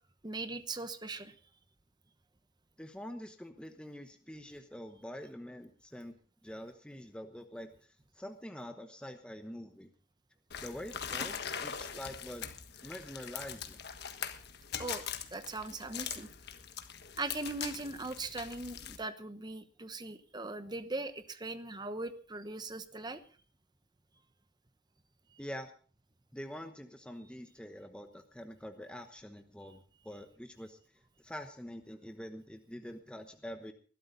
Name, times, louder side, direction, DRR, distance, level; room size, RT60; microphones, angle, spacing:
voice 1, 0.2-1.3 14.8-15.0 15.3-16.3 17.2-23.2, right 2 dB, 20° right, 11 dB, 1.0 m, -40 dB
voice 2, 2.8-6.1 6.4-7.7 8.2-9.9 10.6-12.5 12.8-13.8 25.4-25.7 26.3-30.8 31.2-33.7, equal, 5° left, 5 dB, 1.1 m, -45 dB
sound 1, 10.5-19.0, left 8 dB, 55° left, 1.4 m, -42 dB
20.5 x 12.5 x 4.0 m, 0.41 s
head